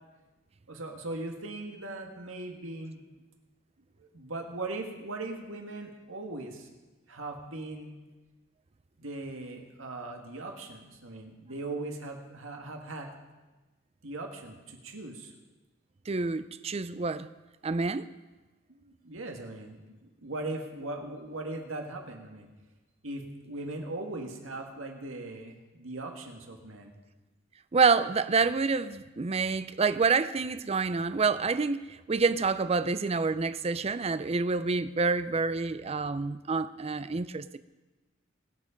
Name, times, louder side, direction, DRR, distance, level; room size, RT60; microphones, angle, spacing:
voice 1, 0.7-3.0 4.0-6.7 7.1-8.0 9.0-13.1 14.0-15.3 18.7-22.5 23.0-26.9, right 2 dB, 90° right, 2.0 m, -39 dB
voice 2, 16.1-17.3 17.6-18.1 27.7-37.6, right 4 dB, 30° right, 0.5 m, -27 dB
22.5 x 7.5 x 5.2 m
head